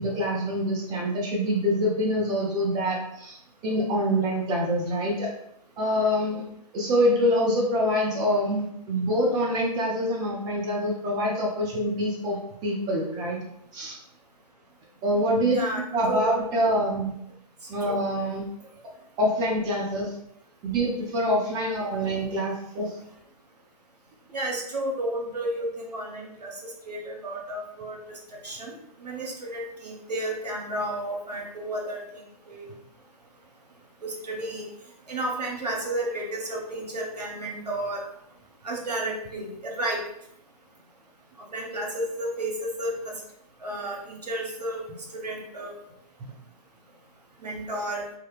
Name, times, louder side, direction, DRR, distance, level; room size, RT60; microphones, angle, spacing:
voice 1, 0.0-5.3 5.8-6.4 6.7-13.4 13.7-14.0 15.0-15.6 15.9-17.1 17.7-18.5 19.2-20.1 20.6-23.0, equal, 20° right, -2 dB, 0.4 m, -25 dB
voice 2, 15.5-16.3 17.8-18.0 24.3-26.5 26.9-28.0 28.4-28.7 29.0-32.0 32.5-32.7 34.0-34.7 35.1-38.0 38.6-40.0 41.5-43.1 43.6-44.8 45.1-45.7 47.4-48.0, right 1 dB, 90° right, -1 dB, 0.8 m, -32 dB
2.7 x 2.1 x 2.4 m, 0.74 s
figure-of-eight pair, 125°, 20 cm